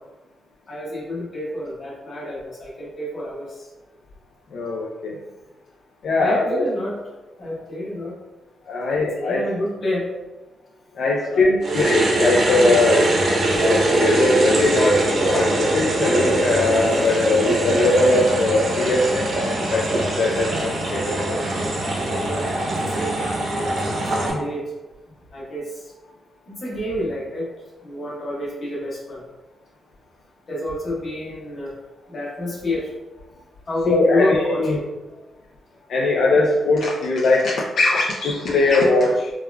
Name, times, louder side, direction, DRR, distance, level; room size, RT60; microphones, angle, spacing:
voice 1, 0.7-3.7 6.2-7.0 7.4-8.2 8.7-10.1 11.2-11.8 17.1-17.3 22.2-24.7 25.3-25.9 26.5-27.5 27.8-29.2 30.5-31.7 32.1-32.9 33.7-34.8, left 1 dB, 45° left, -5 dB, 1.0 m, -29 dB
voice 2, 4.5-5.2 6.0-6.7 8.7-9.4 10.9-13.1 13.6-21.4 33.9-34.8 35.9-39.3, left 2 dB, 70° left, -4 dB, 0.4 m, -20 dB
sound 1, 11.6-24.3, right 1 dB, 65° right, 0.6 m, -22 dB
3.4 x 2.2 x 2.2 m, 1.1 s
cardioid pair, 125°, 0 cm